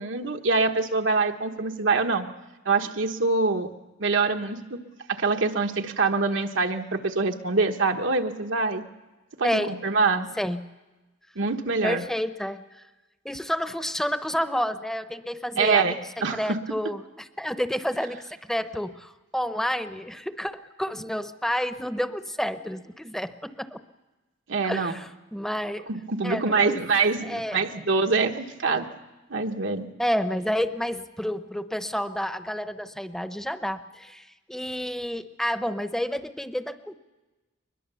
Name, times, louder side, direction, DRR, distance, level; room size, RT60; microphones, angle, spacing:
voice 1, 0.0-2.3 2.6-3.7 4.0-4.8 5.1-8.8 9.4-10.3 11.3-12.1 15.6-16.6 24.5-25.0 25.9-28.8 29.3-29.9, right 4 dB, 80° right, 3 dB, 1.3 m, -25 dB
voice 2, 9.4-9.8 10.3-10.6 11.8-12.6 13.2-16.0 16.3-23.8 24.6-25.9 26.2-26.8 27.2-27.8 30.0-36.9, equal, ahead, 10 dB, 0.7 m, -30 dB
22.5 x 21.0 x 6.9 m, 1.1 s
head